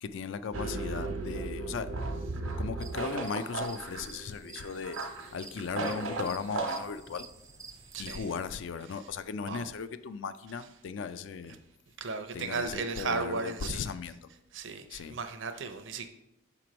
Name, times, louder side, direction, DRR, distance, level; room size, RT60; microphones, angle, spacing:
voice 1, 0.0-1.9 2.6-5.0 5.3-7.3 8.0-11.6 12.3-14.2 14.9-15.2, left 5 dB, 65° left, 13 dB, 0.3 m, -37 dB
sound 1, 0.5-6.8, right 3 dB, 85° right, 1.0 m, -35 dB
sound 2, 2.8-8.5, right 4 dB, 15° right, 0.3 m, -50 dB
voice 2, 7.9-8.3 9.5-9.7 12.0-13.8 14.5-16.1, right 4 dB, 65° right, 8 dB, 0.5 m, -35 dB
6.6 x 3.0 x 5.1 m, 0.84 s
head